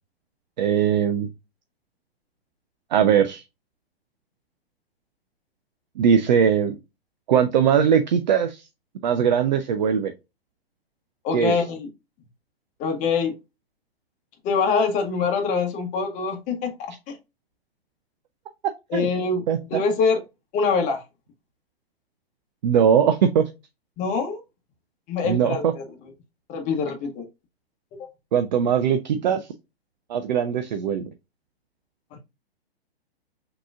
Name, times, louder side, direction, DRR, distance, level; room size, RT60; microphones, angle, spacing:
voice 1, 0.6-1.3 2.9-3.4 6.0-6.8 7.3-8.6 9.0-10.1 11.3-11.5 18.9-19.1 19.5-19.8 22.6-23.4 25.2-25.7 28.3-29.5 30.1-31.1, right 8 dB, 45° right, 8 dB, 0.5 m, -20 dB
voice 2, 11.2-11.9 12.8-13.3 14.4-17.1 18.9-19.4 19.7-20.2 20.5-21.0 24.0-24.4 25.1-25.8 26.5-27.2 28.0-28.1, left 5 dB, 25° left, 4 dB, 1.1 m, -24 dB
5.9 x 3.0 x 2.4 m, 0.25 s
figure-of-eight pair, 110°, 31 cm